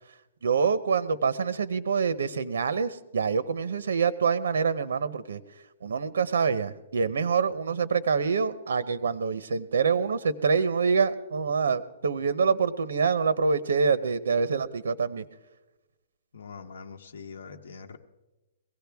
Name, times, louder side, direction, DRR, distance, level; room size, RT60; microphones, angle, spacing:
voice 1, 0.4-5.4 5.8-15.2, right 5 dB, 90° right, 15 dB, 0.7 m, -26 dB
voice 2, 16.3-18.0, left 5 dB, 75° left, 3 dB, 1.0 m, -43 dB
22.0 x 17.0 x 3.5 m, 1.1 s
hypercardioid pair, 175°, 0 cm